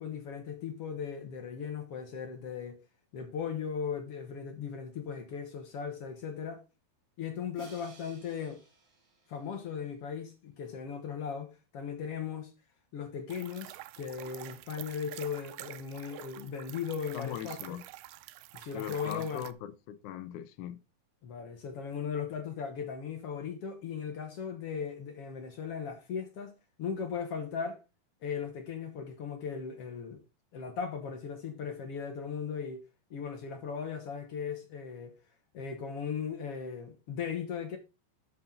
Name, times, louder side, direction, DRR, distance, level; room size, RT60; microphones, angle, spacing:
voice 1, 0.0-2.8 3.1-6.6 7.2-8.6 9.3-12.5 12.9-17.8 18.5-19.5 21.2-27.8 28.2-30.2 30.5-32.8 33.1-35.2 35.5-37.8, left 6 dB, 60° left, 1.7 m, -38 dB
Crash cymbal, 7.6-9.8, right 4 dB, 60° right, 4.7 m, -55 dB
sound 1, 13.3-19.5, right 16 dB, 90° right, 2.5 m, -47 dB
voice 2, 17.1-17.8 18.7-20.8, left 11 dB, 75° left, 2.0 m, -40 dB
12.5 x 6.0 x 3.8 m
omnidirectional pair, 4.2 m